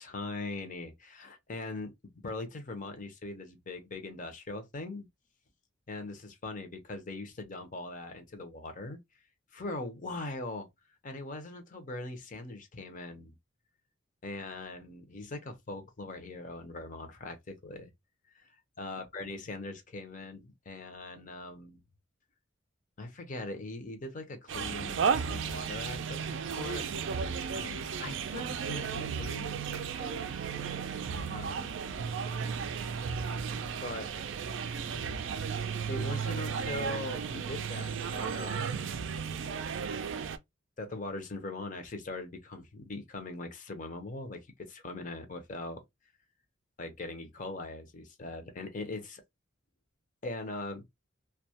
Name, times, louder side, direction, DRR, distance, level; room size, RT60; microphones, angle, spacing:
voice 1, 0.0-1.9 2.2-5.1 5.9-9.0 9.5-10.7 11.0-13.3 14.2-17.9 18.3-18.4 18.8-21.8 23.0-26.9 27.5-30.3 31.3-31.8 33.8-34.1 35.9-39.0 40.8-45.8 46.8-49.2 50.2-50.9, left 2 dB, 40° left, 0.6 m, -41 dB
sound 1, 24.5-40.4, right 6 dB, 60° right, 0.3 m, -34 dB
2.2 x 2.1 x 2.7 m
head